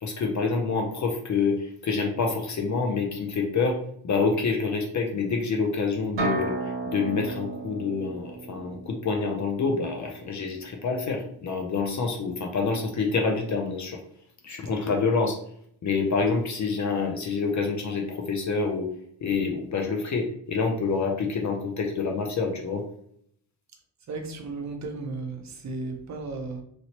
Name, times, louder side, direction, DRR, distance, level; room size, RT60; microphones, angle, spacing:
voice 1, 0.0-3.8 4.0-14.0 14.4-15.4 15.8-18.9 19.2-22.8, left 4 dB, 40° left, 2 dB, 0.4 m, -27 dB
sound 1, 6.2-9.9, right 3 dB, 80° right, 1.1 m, -33 dB
voice 2, 24.1-26.6, right 3 dB, 40° right, 4 dB, 0.6 m, -34 dB
2.9 x 2.9 x 2.8 m, 0.67 s
wide cardioid pair, 175°, 44 cm